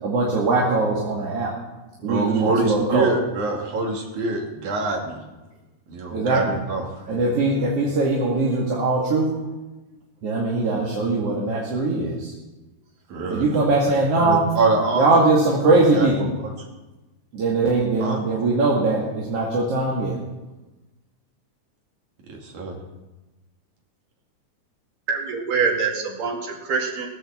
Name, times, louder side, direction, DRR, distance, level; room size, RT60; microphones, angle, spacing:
voice 1, 0.0-1.5 2.0-3.1 6.1-6.6 7.1-9.3 10.2-12.3 13.3-14.5 14.9-16.3 17.3-20.2, right 3 dB, 50° right, -4 dB, 3.0 m, -21 dB
voice 2, 2.1-5.2 5.9-6.9 13.1-13.5 14.2-15.1 15.9-16.1 18.0-18.2 22.3-22.8, right 3 dB, 70° right, 0 dB, 3.9 m, -25 dB
voice 3, 25.1-27.1, right 5 dB, 90° right, -1 dB, 3.9 m, -24 dB
19.0 x 8.2 x 7.3 m, 1.1 s
omnidirectional pair, 3.6 m